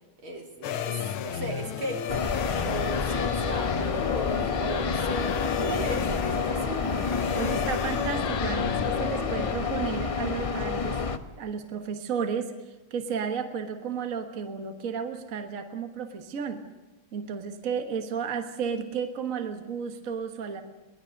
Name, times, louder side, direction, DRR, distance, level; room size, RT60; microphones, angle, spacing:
voice 1, 0.2-2.2 2.7-6.8, right 1 dB, 80° right, 1 dB, 4.1 m, -36 dB
sound 1, 0.6-9.5, left 10 dB, 85° left, 1.7 m, -32 dB
sound 2, 2.1-11.2, left 4 dB, 30° left, 0.6 m, -29 dB
voice 2, 7.3-11.0 11.4-16.6 17.1-20.6, right 6 dB, 45° right, 6 dB, 1.7 m, -33 dB
23.5 x 19.5 x 6.6 m, 1.1 s
omnidirectional pair, 2.2 m